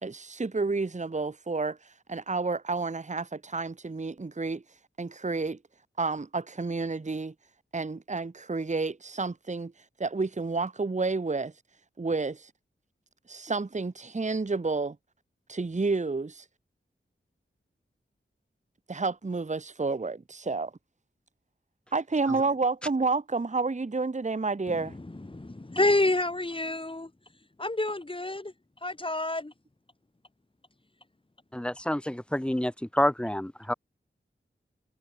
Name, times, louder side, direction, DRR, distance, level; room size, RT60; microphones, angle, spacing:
voice 1, 0.0-1.8 2.1-4.6 5.0-5.6 6.0-7.3 7.7-9.7 10.0-11.5 12.0-12.5 13.3-15.0 15.5-16.4 18.9-20.7 21.9-24.9, right 3 dB, 35° right, 1.1 m, -30 dB
voice 2, 24.7-27.1 27.6-28.5 28.8-29.5, left 2 dB, 25° left, 1.4 m, -28 dB
voice 3, 31.5-33.7, left 1 dB, 5° left, 1.2 m, -28 dB
wide cardioid pair, 80°, 20 cm